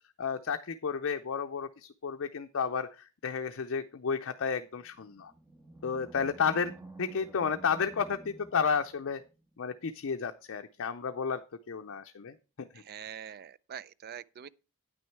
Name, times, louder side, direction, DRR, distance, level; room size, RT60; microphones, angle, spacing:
voice 1, 0.2-5.3 5.8-6.7 7.0-9.2 9.6-12.7, left 6 dB, 65° left, 0.5 m, -32 dB
Animal, 4.9-9.4, right 1 dB, 15° right, 1.4 m, -50 dB
voice 2, 12.9-14.5, right 8 dB, 45° right, 0.4 m, -44 dB
9.6 x 6.3 x 4.5 m
head